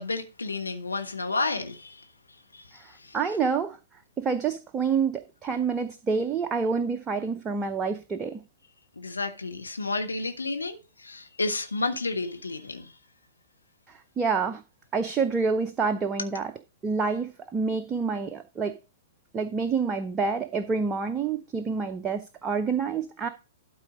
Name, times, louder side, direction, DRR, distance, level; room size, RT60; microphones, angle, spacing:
voice 1, 0.0-2.0 2.5-2.6 3.0-3.2 9.0-12.9, left 3 dB, 75° left, 1.1 m, -31 dB
voice 2, 2.7-3.8 4.2-8.4 13.9-14.6 14.9-16.5 16.8-18.8 19.3-23.3, right 5 dB, 15° right, 0.6 m, -28 dB
12.5 x 4.4 x 5.0 m
figure-of-eight pair, 110°, 0 cm